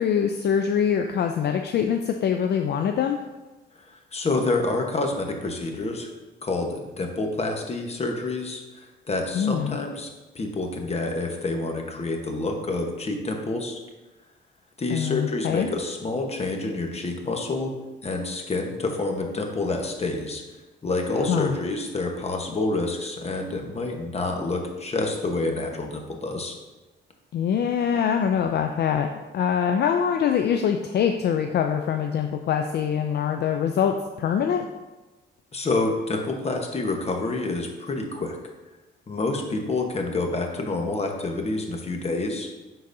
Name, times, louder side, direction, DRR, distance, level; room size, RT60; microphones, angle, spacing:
voice 1, 0.0-3.2 9.3-9.8 14.9-15.7 21.3-21.6 27.3-29.1 29.3-34.7, left 8 dB, 60° left, 5 dB, 0.4 m, -24 dB
voice 2, 3.8-6.1 6.4-13.8 14.8-17.7 18.0-20.4 20.8-26.5 35.5-38.4 39.1-42.5, left 2 dB, 30° left, 3 dB, 1.1 m, -28 dB
10.0 x 4.0 x 2.7 m, 1.1 s
cardioid pair, 90°, 20 cm